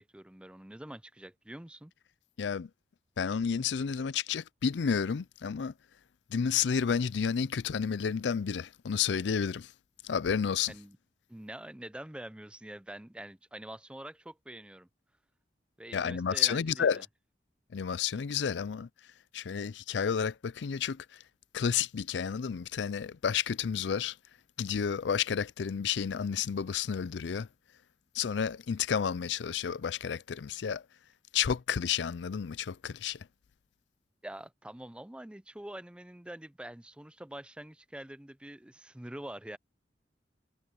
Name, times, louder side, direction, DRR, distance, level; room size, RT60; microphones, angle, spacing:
voice 1, 0.0-1.9 10.7-11.0 11.3-14.9 15.8-17.0 34.2-39.6, right 1 dB, 5° right, 0.5 m, -45 dB
voice 2, 2.4-2.7 3.2-5.7 6.3-9.7 10.0-10.7 15.9-17.1 17.7-18.9 19.3-21.2 21.5-24.2 24.6-27.5 28.1-30.8 31.3-33.3, left 7 dB, 75° left, 0.4 m, -31 dB
head